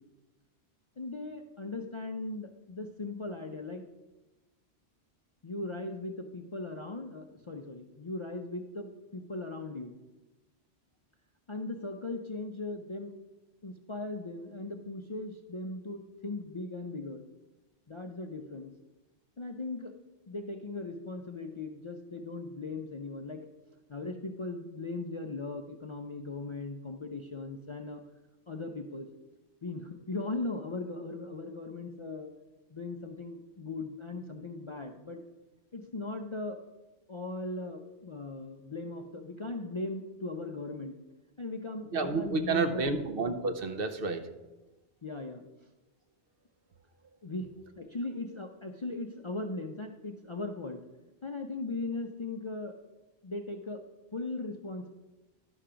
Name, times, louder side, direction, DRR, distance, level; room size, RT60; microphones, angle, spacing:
voice 1, 1.0-3.8 5.4-9.9 11.5-13.1 13.6-17.2 17.9-18.7 19.4-19.9 20.3-28.0 28.5-29.1 29.6-32.3 32.7-35.2 35.7-36.6 37.1-40.9 41.4-43.0 45.0-45.7 47.2-47.5 47.8-50.8 51.2-52.8 53.2-53.8 54.1-54.9, left 2 dB, 40° left, 3 dB, 0.4 m, -38 dB
voice 2, 41.9-44.3, right 4 dB, 60° right, 7 dB, 0.9 m, -30 dB
11.0 x 5.7 x 5.0 m, 1.1 s
omnidirectional pair, 1.1 m